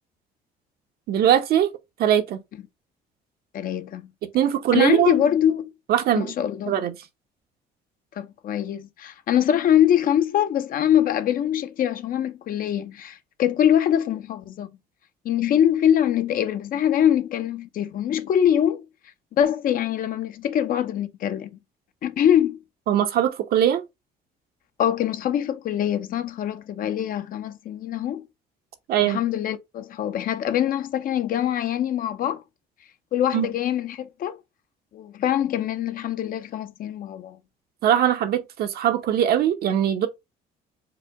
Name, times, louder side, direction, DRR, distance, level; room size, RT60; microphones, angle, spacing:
voice 1, 1.1-1.7 2.0-2.4 4.3-5.1 5.9-6.3 6.7-6.9 22.9-23.8 28.9-29.2 33.3-33.5 37.8-40.1, right 10 dB, 65° right, 0.9 m, -21 dB
voice 2, 3.5-4.1 4.7-5.7 6.1-6.8 8.2-14.7 15.2-18.8 19.3-21.5 22.0-22.6 24.8-28.2 29.0-32.4 33.1-34.4 34.9-37.4, left 10 dB, 55° left, 0.7 m, -23 dB
4.8 x 2.2 x 4.8 m
cardioid pair, 110°, 17 cm